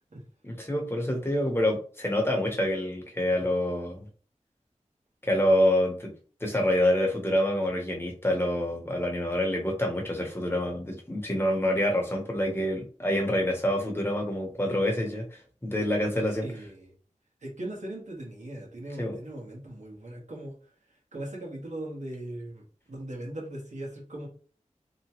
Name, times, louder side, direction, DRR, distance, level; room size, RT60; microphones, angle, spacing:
voice 1, 0.4-4.0 5.2-6.1 6.4-16.5 19.0-19.2, left 1 dB, 20° left, 1 dB, 0.9 m, -27 dB
voice 2, 16.4-16.9 17.4-20.5 21.1-24.3, right 1 dB, 65° right, -2 dB, 1.2 m, -39 dB
2.9 x 2.2 x 2.9 m, 0.40 s
wide cardioid pair, 70°, 13 cm